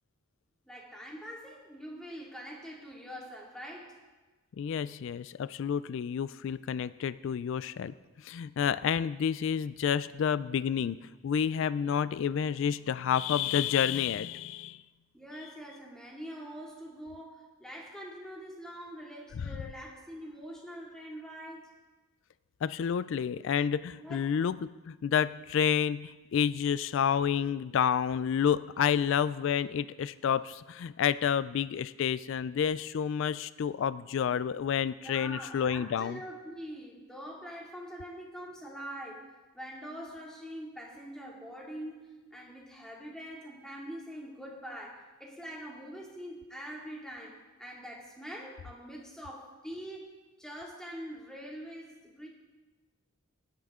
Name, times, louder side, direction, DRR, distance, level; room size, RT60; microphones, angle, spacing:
voice 1, 0.6-4.0 15.1-21.7 24.0-24.3 35.0-50.1 50.4-52.3, equal, 5° left, -3 dB, 2.3 m, -44 dB
voice 2, 4.6-7.9 8.2-11.0 11.2-14.8 22.6-36.2, left 8 dB, 60° left, 17 dB, 0.3 m, -29 dB
17.0 x 11.0 x 3.6 m, 1.2 s
head